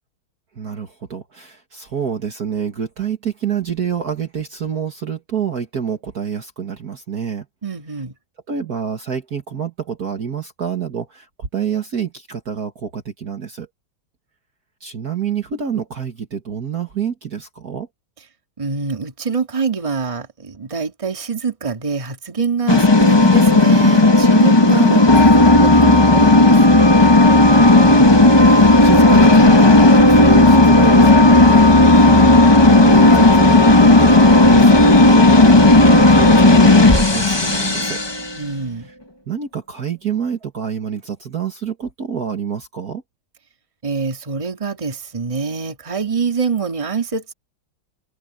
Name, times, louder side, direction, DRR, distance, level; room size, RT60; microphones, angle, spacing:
voice 1, 0.6-7.5 8.5-13.7 14.8-17.9 27.6-32.3 32.7-38.0 38.8-39.0 39.3-43.0, right 7 dB, 45° right, 2.0 m, -27 dB
voice 2, 7.6-8.1 18.6-26.8 31.7-32.3 38.4-38.9 43.8-47.3, right 5 dB, 15° right, 1.9 m, -25 dB
sound 1, 22.7-38.4, left 2 dB, 25° left, 0.6 m, -11 dB
omnidirectional pair, 2.4 m